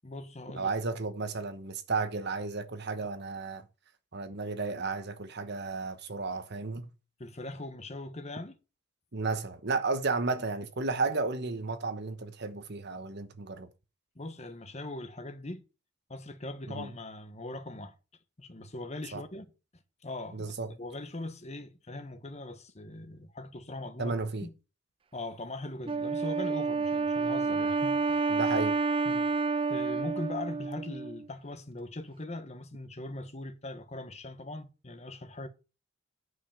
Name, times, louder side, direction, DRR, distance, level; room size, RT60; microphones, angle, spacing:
voice 1, 0.0-0.7 7.2-8.6 14.1-15.6 16.1-17.9 18.4-19.5 20.0-20.5 20.8-24.1 24.4-24.5 25.1-28.4 29.0-29.3 29.7-35.5, left 2 dB, 35° left, 1.3 m, -40 dB
voice 2, 0.6-3.7 4.1-6.9 9.1-13.7 16.7-16.9 19.1-19.2 20.3-20.7 24.0-24.5 28.3-28.8, right 3 dB, 55° right, 1.2 m, -33 dB
Wind instrument woodwind instrument, 25.9-31.3, right 4 dB, 25° right, 0.4 m, -29 dB
9.7 x 5.5 x 7.0 m
head